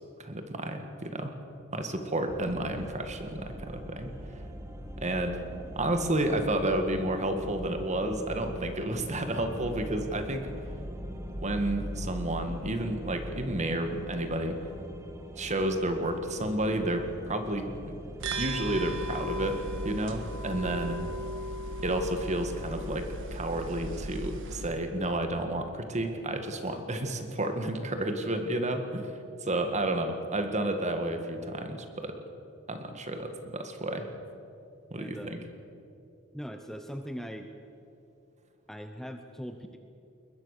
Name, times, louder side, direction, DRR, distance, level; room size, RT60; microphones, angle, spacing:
voice 1, 0.2-1.3 1.7-4.1 5.0-5.4 5.8-10.5 11.4-14.7 15.4-17.9 18.4-21.0 21.8-29.1 29.4-32.2 32.7-34.1 34.9-35.4, right 1 dB, 35° right, 6 dB, 1.9 m, -31 dB
sound 1, 2.3-20.4, equal, 15° right, 1.5 m, -42 dB
sound 2, 18.2-24.7, right 1 dB, 60° right, 1.7 m, -36 dB
voice 2, 35.0-35.4 36.3-37.5 38.7-39.8, equal, ahead, 5 dB, 0.9 m, -40 dB
21.5 x 21.0 x 6.7 m, 2.8 s
head